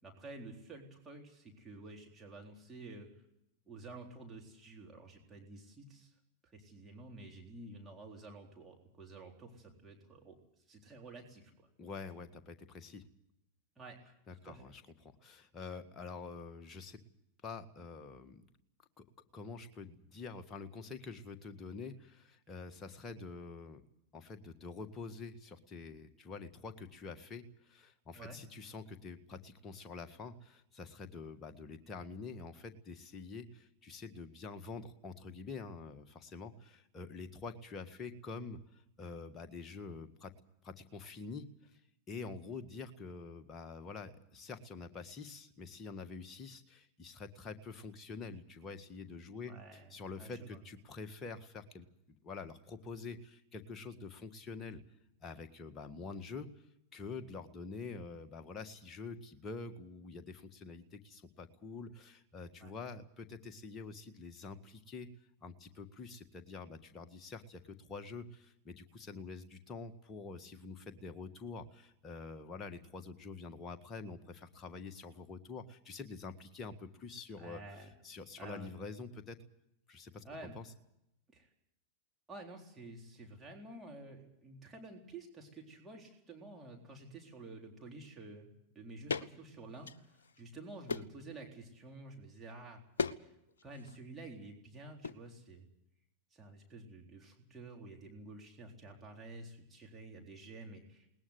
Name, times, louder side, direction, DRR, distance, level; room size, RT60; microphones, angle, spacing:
voice 1, 0.0-3.1 3.7-6.1 6.4-10.4 10.7-11.7 13.8-14.1 14.4-14.6 28.1-28.4 49.5-49.9 50.2-50.6 62.6-62.7 77.4-77.9 78.4-78.7 80.2-80.6 81.3-81.5 82.3-88.5 88.8-92.8 93.2-93.3 93.6-95.6 96.3-101.1, right 2 dB, 15° right, 0 dB, 3.9 m, -50 dB
voice 2, 11.8-13.0 14.3-17.0 17.4-18.5 19.0-19.1 19.3-23.8 24.1-40.3 40.6-41.8 42.1-51.9 52.2-54.8 55.2-56.5 56.9-65.1 65.4-79.4 79.9-80.2 80.5-80.7, left 4 dB, 25° left, 6 dB, 1.8 m, -47 dB
sound 1, 89.1-89.3 89.7-90.4 90.9-91.2 93.0-93.2 93.5-94.0 95.0-95.2, left 4 dB, 65° left, 0.8 m, -37 dB
21.0 x 19.5 x 8.1 m, 0.79 s
figure-of-eight pair, 90°, 0 cm